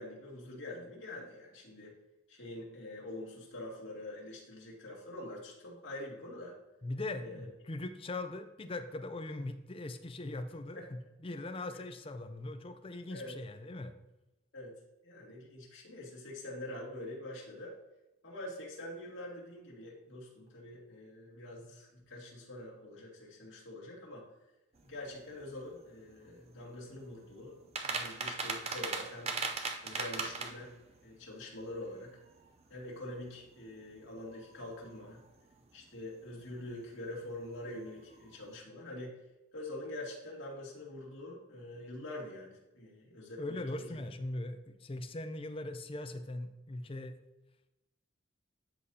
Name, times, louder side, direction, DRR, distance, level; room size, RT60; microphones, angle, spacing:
voice 1, 0.0-1.9 2.3-6.5 7.2-7.5 10.8-10.9 13.1-13.3 14.5-14.7 15.0-17.7 18.2-24.3 24.8-27.6 27.8-29.3 29.8-30.7 31.0-32.1 32.7-35.2 35.7-39.2 39.5-43.8, left 1 dB, 70° left, -4 dB, 2.4 m, -45 dB
voice 2, 6.8-13.9 43.4-47.2, left 2 dB, 25° left, 8 dB, 0.5 m, -40 dB
sound 1, 24.8-38.6, right 4 dB, 30° right, 0.5 m, -43 dB
12.5 x 4.2 x 2.8 m, 0.97 s
head